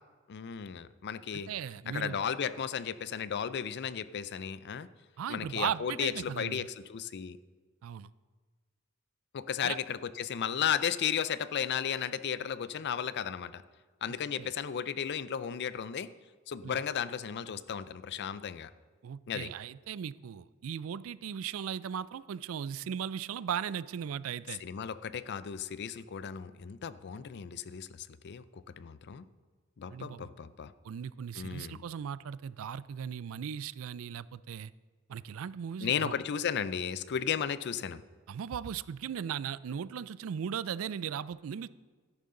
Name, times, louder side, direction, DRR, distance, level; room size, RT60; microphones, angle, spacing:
voice 1, 0.3-1.5 1.9-4.9 5.3-7.4 9.3-13.6 14.0-16.1 16.5-18.7 19.3-19.5 24.6-29.3 29.8-30.7 31.4-31.8 35.8-38.0, left 8 dB, 55° left, 15 dB, 0.4 m, -34 dB
voice 2, 1.3-2.2 5.2-6.7 7.8-8.1 9.6-9.8 14.4-14.5 16.6-16.8 19.0-24.6 29.9-30.3 30.8-34.7 35.1-36.1 38.3-41.7, right 8 dB, 70° right, 18 dB, 0.4 m, -37 dB
13.0 x 11.0 x 3.8 m, 1.4 s
head